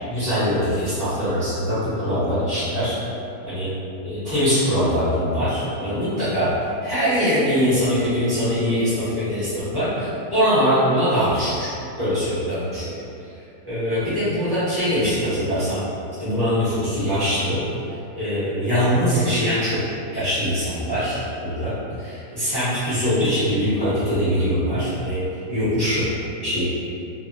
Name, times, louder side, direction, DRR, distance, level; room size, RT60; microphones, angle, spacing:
voice 1, 0.1-3.0 3.4-3.7 4.0-6.5 6.8-11.7 12.0-12.9 13.6-15.8 16.2-17.6 18.1-19.8 20.1-25.2 25.5-26.0 26.4-26.6, equal, 35° left, -14 dB, 0.3 m, -22 dB
2.8 x 2.0 x 2.6 m, 2.7 s
omnidirectional pair, 1.7 m